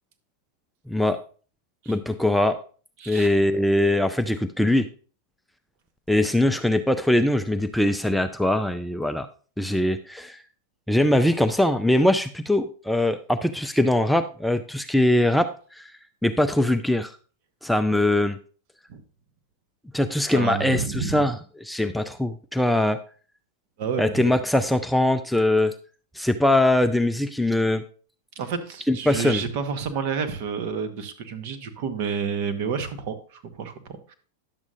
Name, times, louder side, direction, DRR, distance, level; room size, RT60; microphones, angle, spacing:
voice 1, 1.9-2.6 3.1-4.9 6.1-9.3 9.6-10.4 10.9-15.8 16.2-17.1 17.6-18.4 19.9-23.0 24.0-25.7 26.2-27.8 28.9-29.4, left 1 dB, ahead, 8 dB, 0.4 m, -22 dB
voice 2, 3.0-3.3 18.9-19.0 20.3-21.3 23.8-24.3 28.4-34.1, right 6 dB, 45° right, 9 dB, 1.0 m, -30 dB
10.5 x 7.2 x 2.6 m, 0.39 s
figure-of-eight pair, 90°, 0 cm